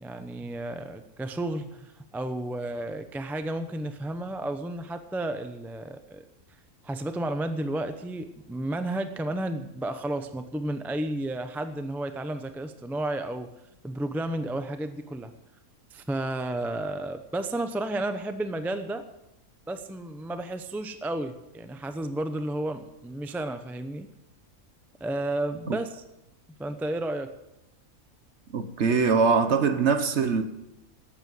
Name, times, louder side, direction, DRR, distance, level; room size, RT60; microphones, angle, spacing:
voice 1, 0.0-6.2 6.8-13.5 13.8-15.3 15.9-19.0 19.7-24.1 25.0-26.0 26.6-27.3, right 1 dB, ahead, 0.5 m, -32 dB
voice 2, 28.5-30.4, right 5 dB, 55° right, 1.2 m, -23 dB
12.5 x 8.9 x 7.8 m
omnidirectional pair, 1.5 m